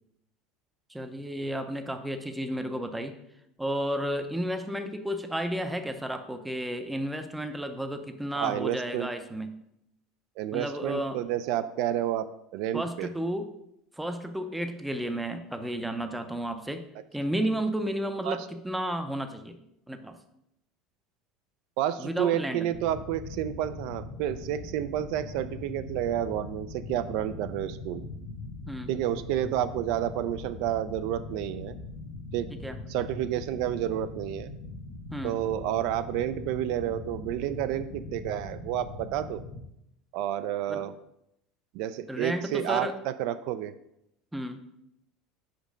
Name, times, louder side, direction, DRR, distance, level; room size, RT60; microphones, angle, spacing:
voice 1, 0.9-3.1 3.6-9.5 10.5-11.2 12.7-13.5 13.9-16.8 17.1-19.6 19.9-20.2 22.0-22.7 28.7-28.9 32.5-32.8 35.1-35.4 40.7-40.9 42.1-43.0 44.3-44.6, right 1 dB, 5° right, 8 dB, 0.5 m, -32 dB
voice 2, 8.4-9.1 10.4-13.1 18.2-18.4 21.8-28.0 28.9-31.8 32.3-32.5 32.9-34.5 35.2-39.4 40.1-40.9 41.7-43.7, right 11 dB, 60° right, 13 dB, 0.3 m, -30 dB
sound 1, 22.7-39.6, left 2 dB, 50° left, 1.1 m, -41 dB
5.4 x 5.1 x 5.1 m, 0.80 s
cardioid pair, 160°, 0 cm